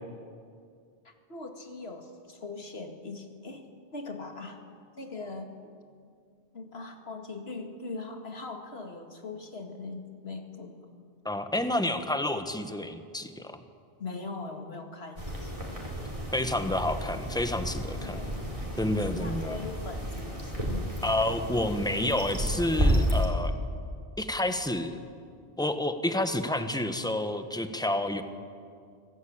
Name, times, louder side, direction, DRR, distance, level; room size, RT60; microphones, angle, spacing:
voice 1, 1.0-3.6 3.9-4.6 5.0-5.5 6.5-10.8 14.0-15.9 17.8-18.5 18.9-20.9, left 3 dB, 90° left, 4 dB, 2.4 m, -41 dB
voice 2, 11.2-13.6 16.3-18.2 18.8-19.6 21.0-23.5 24.2-24.9 25.6-28.2, left 1 dB, 5° left, 8 dB, 1.2 m, -29 dB
sound 1, 15.2-23.3, equal, 35° right, 4.3 m, -31 dB
25.0 x 17.0 x 8.7 m, 2.2 s
omnidirectional pair, 1.0 m